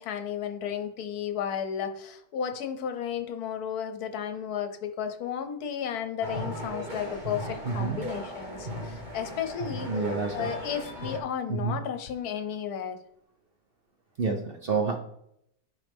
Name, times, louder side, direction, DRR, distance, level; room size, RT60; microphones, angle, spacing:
voice 1, 0.0-10.0 10.3-13.0, left 8 dB, 70° left, 8 dB, 1.2 m, -33 dB
sound 1, 6.2-11.2, equal, 30° right, 1.5 m, -37 dB
voice 2, 7.7-8.0 9.9-10.5 11.6-11.8 14.2-15.0, right 4 dB, 50° right, 3 dB, 0.7 m, -28 dB
9.3 x 5.4 x 3.5 m, 0.75 s
omnidirectional pair, 1.8 m